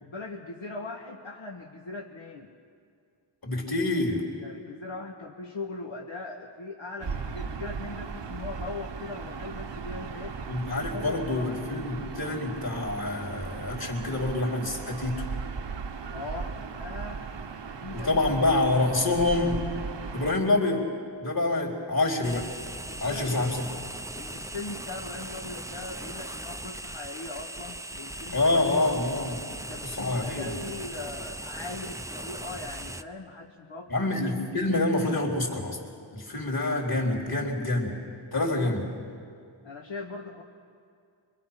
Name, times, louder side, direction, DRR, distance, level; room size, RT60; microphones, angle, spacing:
voice 1, 0.0-2.5 4.4-10.4 10.8-11.6 16.1-17.3 17.8-18.5 22.9-23.6 24.2-28.5 29.5-34.1 38.3-38.7 39.6-40.4, left 3 dB, 80° left, -1 dB, 1.5 m, -40 dB
voice 2, 3.4-4.2 10.5-15.3 17.9-19.6 20.1-20.9 21.2-22.5 23.0-23.5 28.3-29.4 29.8-30.5 33.9-35.8 36.1-37.9 38.3-38.8, left 2 dB, 50° left, -2 dB, 4.0 m, -26 dB
Gull seagull / Ocean, 7.0-20.4, right 5 dB, 65° right, 1.1 m, -37 dB
sound 1, 22.2-33.0, right 1 dB, 5° right, 0.6 m, -39 dB
26.0 x 23.5 x 5.9 m, 2.3 s
wide cardioid pair, 80°, 46 cm